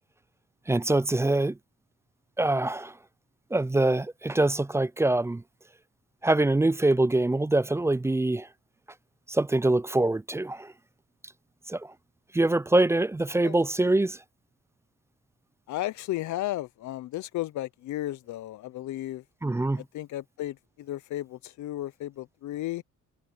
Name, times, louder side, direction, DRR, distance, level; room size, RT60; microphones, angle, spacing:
voice 1, 0.7-1.6 2.4-2.9 3.5-5.4 6.2-8.5 9.3-10.7 11.7-11.9 12.3-14.2 19.4-19.8, right 2 dB, 10° right, 0.4 m, -24 dB
voice 2, 15.7-19.2 19.8-22.8, left 14 dB, 70° left, 0.6 m, -34 dB
cardioid pair, 90°, 30 cm